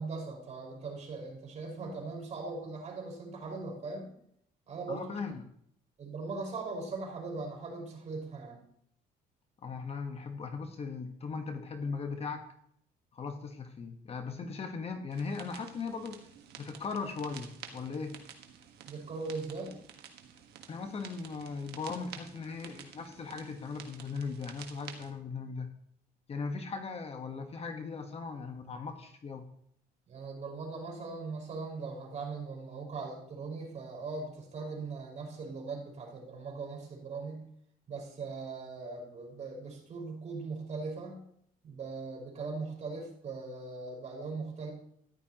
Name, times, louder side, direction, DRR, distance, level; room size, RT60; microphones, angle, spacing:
voice 1, 0.0-4.1 4.7-5.2 6.0-8.6 18.9-19.8 30.1-37.4 37.9-41.2 41.6-44.7, right 3 dB, 45° right, -1 dB, 5.1 m, -40 dB
voice 2, 4.9-5.4 9.6-12.5 13.1-16.2 16.6-18.2 20.7-25.7 26.3-29.5, left 4 dB, 35° left, 6 dB, 1.3 m, -38 dB
sound 1, 15.1-25.1, right 8 dB, 75° right, 1.5 m, -51 dB
14.0 x 11.0 x 3.0 m, 0.67 s
cardioid pair, 110°, 17 cm